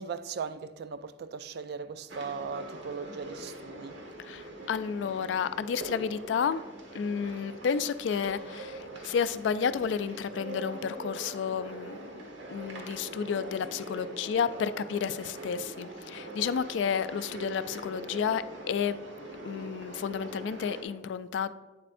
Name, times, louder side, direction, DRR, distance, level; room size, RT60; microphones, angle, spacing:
voice 1, 0.0-4.0, right 5 dB, 60° right, 0.3 m, -38 dB
sound 1, 2.1-20.8, right 2 dB, 80° right, 1.3 m, -43 dB
voice 2, 4.2-6.6 6.9-12.0 12.5-19.0 19.4-21.5, left 7 dB, 70° left, 0.3 m, -31 dB
8.6 x 7.5 x 2.5 m
head